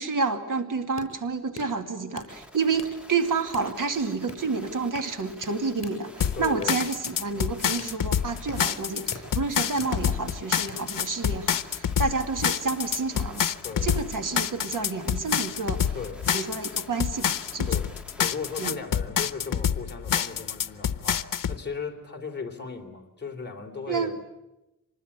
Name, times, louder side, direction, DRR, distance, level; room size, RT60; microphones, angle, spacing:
voice 1, 0.0-13.5 13.8-16.0 16.3-17.8 18.6-18.8 23.9-24.1, right 4 dB, 75° right, 6 dB, 2.4 m, -29 dB
sound 1, 0.7-10.8, left 3 dB, 50° left, 7.1 m, -46 dB
sound 2, 2.3-18.8, left 1 dB, 5° right, 2.2 m, -49 dB
sound 3, 6.2-21.6, left 8 dB, 85° left, 0.9 m, -27 dB
voice 2, 6.3-6.8 13.6-13.9 15.9-16.2 17.6-17.9 18.2-24.3, left 5 dB, 30° left, 2 dB, 3.1 m, -36 dB
25.5 x 20.0 x 9.6 m, 0.98 s
wide cardioid pair, 135°, 32 cm